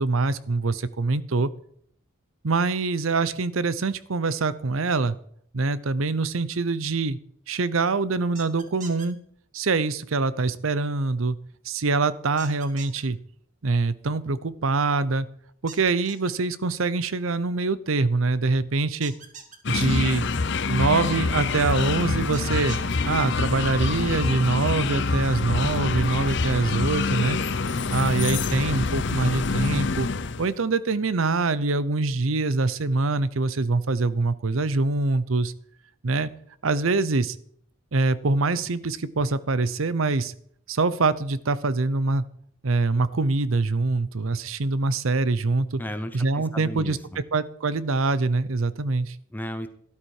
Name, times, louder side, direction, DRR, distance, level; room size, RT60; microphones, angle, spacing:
voice 1, 0.0-1.5 2.4-5.2 5.5-7.2 7.5-9.2 9.5-11.4 11.6-13.2 13.6-15.3 15.6-19.1 19.7-20.3 20.7-22.8 23.0-27.4 27.9-30.1 30.4-35.5 36.0-36.3 36.6-37.4 37.9-40.3 40.7-42.2 42.6-45.8 46.1-47.0 47.3-49.2, right 3 dB, 85° right, 17 dB, 0.7 m, -24 dB
sound 1, 8.3-9.1 12.4-13.0 15.7-16.3 19.0-19.6 22.3-23.0, right 6 dB, 40° right, 1.7 m, -42 dB
sound 2, 19.6-30.5, left 4 dB, 60° left, 0.7 m, -26 dB
voice 2, 45.8-47.2 49.3-49.7, left 1 dB, 10° left, 10 dB, 0.7 m, -34 dB
13.0 x 12.0 x 4.8 m, 0.65 s
head